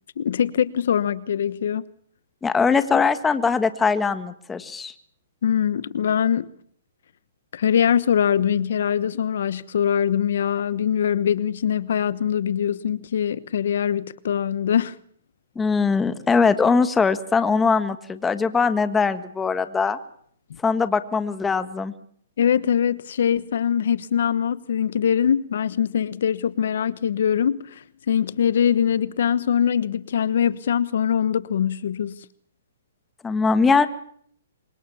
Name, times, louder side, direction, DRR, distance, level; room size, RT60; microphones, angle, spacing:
voice 1, 0.2-1.9 5.4-6.5 7.5-15.0 22.4-32.2, left 8 dB, 65° left, 1.1 m, -22 dB
voice 2, 2.4-4.9 15.5-20.0 20.6-21.9 33.2-33.9, left 5 dB, 10° left, 1.7 m, -21 dB
26.0 x 24.0 x 7.2 m
hypercardioid pair, 155°, 0 cm